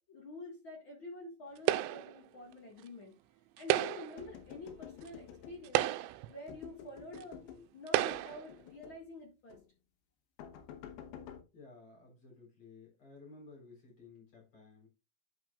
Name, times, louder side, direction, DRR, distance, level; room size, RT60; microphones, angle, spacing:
voice 1, 0.1-3.1 3.6-5.9 6.3-7.4 7.7-9.6, left 2 dB, 70° left, -2 dB, 1.1 m, -48 dB
sound 1, 1.7-2.2 3.6-4.2 5.1-5.2 5.6-6.3 7.2-7.3 7.9-8.5, right 15 dB, 85° right, 2.7 m, -31 dB
sound 2, 4.2-5.9 6.5-7.7 8.1-9.1 9.5-9.7 10.4-11.4, left 8 dB, 90° left, 3.4 m, -50 dB
voice 2, 11.5-14.9, left 3 dB, 30° left, -2 dB, 4.5 m, -55 dB
11.5 x 6.1 x 2.4 m, 0.29 s
omnidirectional pair, 5.3 m